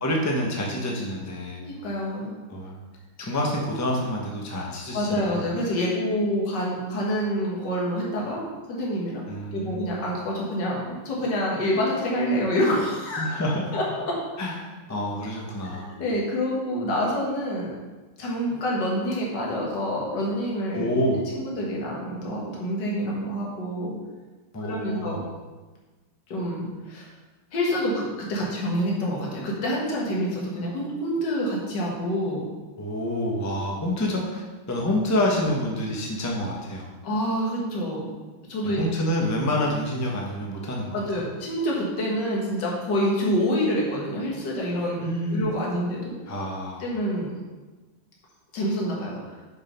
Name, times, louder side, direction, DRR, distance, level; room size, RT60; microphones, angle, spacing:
voice 1, 0.0-1.6 2.5-2.8 3.2-5.5 9.3-9.8 13.2-13.8 14.4-15.9 20.7-21.3 24.5-25.2 32.8-36.9 38.6-41.3 45.0-45.5 46.3-46.9, left 1 dB, 15° left, -1 dB, 0.7 m, -28 dB
voice 2, 1.6-2.3 4.9-9.2 9.5-13.3 13.7-14.2 15.7-17.7 18.2-20.9 21.3-23.9 24.6-25.2 26.3-27.1 27.5-32.4 37.0-38.1 38.5-38.8 40.9-45.1 45.3-46.1 46.8-47.3 48.5-49.4, equal, 55° left, -3 dB, 2.2 m, -27 dB
6.6 x 5.5 x 5.4 m, 1.3 s
omnidirectional pair, 2.4 m